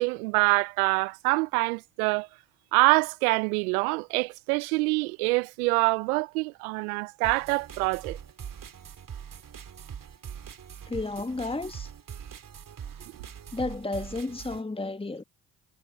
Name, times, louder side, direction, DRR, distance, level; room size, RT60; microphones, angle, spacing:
voice 1, 0.0-2.3 2.7-8.2, right 28 dB, 75° right, 0.9 m, -25 dB
sound 1, 7.2-14.6, right 8 dB, 45° right, 3.8 m, -42 dB
voice 2, 10.9-11.9 13.5-15.2, left 3 dB, 10° left, 1.8 m, -32 dB
hypercardioid pair, 50°, 44 cm